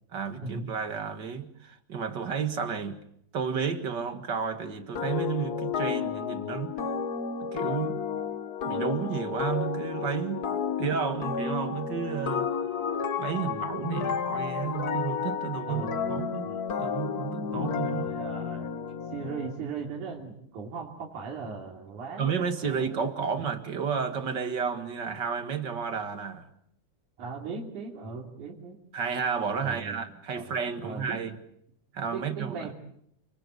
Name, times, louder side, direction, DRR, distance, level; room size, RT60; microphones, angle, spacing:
voice 1, 0.1-3.0 3.3-6.7 7.4-8.0 8.6-10.5 10.8-12.5 13.2-16.5 16.8-18.1 22.2-26.5 28.9-31.3 31.9-32.7, right 6 dB, 40° right, 1.9 m, -32 dB
sound 1, 5.0-19.6, left 6 dB, 90° left, 0.8 m, -32 dB
voice 2, 15.7-16.0 16.4-16.6 17.9-18.7 19.1-22.3 22.6-23.4 27.2-28.8 29.6-30.0 30.4-31.2 32.1-32.7, right 5 dB, 70° right, 4.4 m, -38 dB
29.5 x 21.0 x 8.3 m
omnidirectional pair, 3.6 m